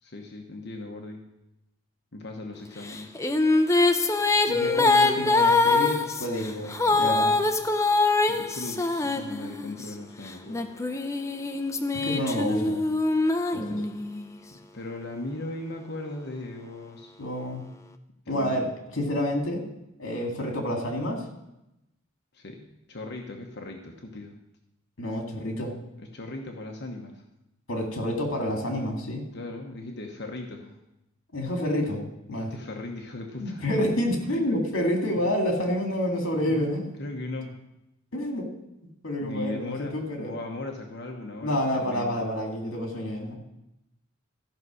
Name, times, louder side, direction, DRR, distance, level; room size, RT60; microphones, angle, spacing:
voice 1, 0.0-1.2 2.1-3.2 8.2-10.6 14.7-17.1 18.3-18.6 22.3-24.4 26.0-27.2 29.3-30.8 32.3-33.6 36.4-36.7 37.0-37.5 39.2-42.3, left 2 dB, 55° left, 2 dB, 1.1 m, -38 dB
sound 1, 2.9-9.9 10.5-14.2, left 3 dB, 15° left, 0.5 m, -24 dB
voice 2, 4.5-7.4 12.0-12.8 13.5-13.8 17.2-17.6 18.3-18.7 18.9-19.6 20.0-21.2 25.0-25.7 27.7-29.2 31.3-32.0 32.3-32.5 33.4-36.8 38.1-38.5 39.0-40.3 41.4-43.4, equal, 70° left, 2 dB, 2.2 m, -28 dB
14.0 x 5.4 x 6.3 m, 0.90 s
head